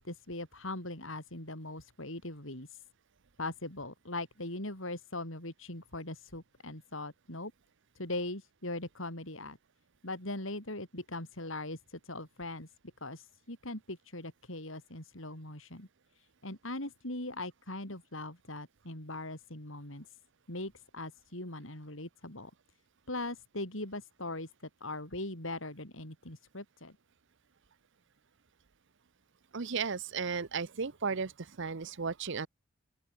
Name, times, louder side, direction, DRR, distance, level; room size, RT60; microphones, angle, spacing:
voice 1, 0.0-2.8 3.4-7.5 7.9-9.6 10.0-12.7 13.0-15.9 16.1-20.2 20.5-22.5 23.1-24.5 24.8-26.9, left 2 dB, 65° left, 6.5 m, -40 dB
voice 2, 29.5-31.3 31.6-32.5, right 5 dB, 60° right, 0.8 m, -34 dB
open air
head